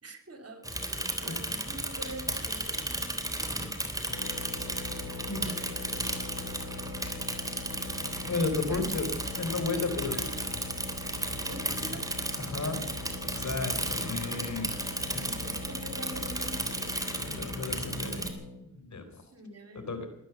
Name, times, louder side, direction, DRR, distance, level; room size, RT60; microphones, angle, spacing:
voice 1, 0.0-4.1 5.2-6.1 7.7-8.3 8.7-8.8 9.8-10.4 11.5-12.1 15.1-17.4 19.3-20.0, right 1 dB, 45° right, 6 dB, 3.3 m, -46 dB
Bicycle / Mechanisms, 0.6-18.3, right 1 dB, 10° right, 3.2 m, -34 dB
sound 1, 4.1-18.6, left 3 dB, 85° left, 5.8 m, -42 dB
voice 2, 5.3-5.6 8.3-9.1 9.4-10.2 12.4-12.8 13.3-14.8 17.1-18.3 18.7-19.2 19.9-20.1, left 3 dB, 55° left, 8 dB, 3.8 m, -33 dB
20.5 x 9.2 x 7.0 m, 0.81 s
cardioid pair, 50°, 35 cm